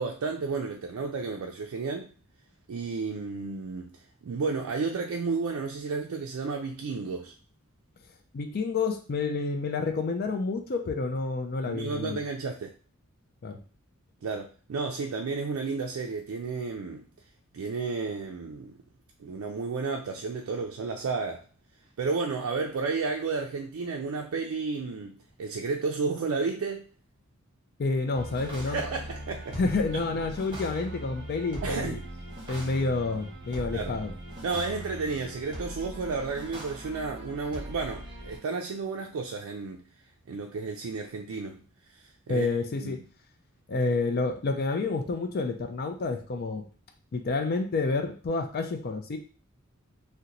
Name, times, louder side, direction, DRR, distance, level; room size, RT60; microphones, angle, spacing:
voice 1, 0.0-2.1 2.7-4.0 4.2-7.3 11.7-12.7 14.2-17.0 17.5-18.7 19.2-21.5 22.0-26.8 28.7-29.6 31.6-32.0 33.7-34.0 34.4-39.8 40.3-41.6 41.9-42.5 42.8-42.9, right 4 dB, 75° right, 2 dB, 0.4 m, -32 dB
voice 2, 8.3-12.2 13.4-13.6 27.8-28.8 29.5-32.0 32.5-34.1 42.3-43.0 43.7-46.7 47.1-49.2, left 3 dB, 45° left, 5 dB, 0.4 m, -29 dB
sound 1, 28.1-38.4, right 1 dB, 20° right, 1.1 m, -40 dB
2.8 x 2.2 x 3.8 m, 0.38 s
head